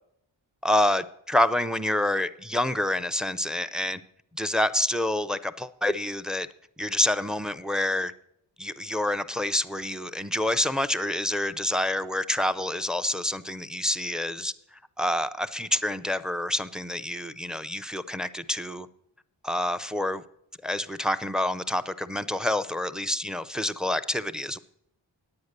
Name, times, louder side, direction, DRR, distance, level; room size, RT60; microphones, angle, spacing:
voice 1, 0.6-4.0 4.4-6.5 6.8-8.1 8.6-14.5 15.0-18.9 19.4-20.2 20.6-24.6, left 1 dB, ahead, 14 dB, 0.4 m, -27 dB
9.6 x 8.8 x 6.6 m, 0.76 s
wide cardioid pair, 60°, 46 cm